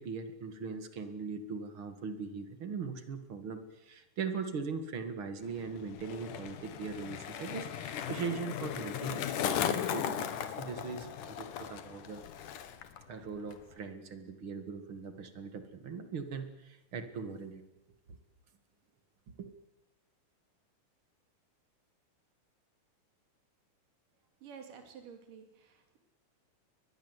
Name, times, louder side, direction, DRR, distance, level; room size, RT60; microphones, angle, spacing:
voice 1, 0.0-9.2 9.5-12.6 13.1-17.6 18.1-18.2 19.4-19.5, right 5 dB, 45° right, 9 dB, 2.4 m, -40 dB
Skateboard, 5.4-13.0 13.3-13.8, left 9 dB, 75° left, 2.9 m, -37 dB
voice 2, 24.4-26.0, right 6 dB, 80° right, 5 dB, 4.3 m, -51 dB
23.5 x 20.0 x 8.2 m, 0.93 s
omnidirectional pair, 3.7 m